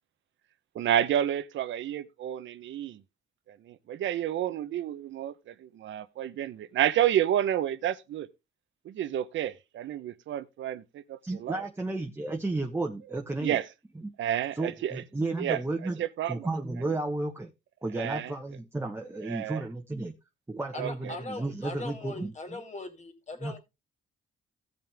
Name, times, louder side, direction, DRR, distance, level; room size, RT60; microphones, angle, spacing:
voice 1, 0.7-3.0 3.5-8.3 8.8-11.6 13.4-13.7 14.2-15.0 15.4-15.6 16.0-16.5 16.9-17.0 17.9-18.3 19.2-19.6 20.7-21.2, right 11 dB, 75° right, 0.9 m, -30 dB
voice 2, 11.2-13.6 14.6-17.5 17.8-20.1 20.5-22.6 23.4-23.6, right 2 dB, 10° right, 1.2 m, -33 dB
voice 3, 20.7-23.6, left 2 dB, 35° left, 3.0 m, -40 dB
16.0 x 6.0 x 3.5 m
cardioid pair, 90°, 20 cm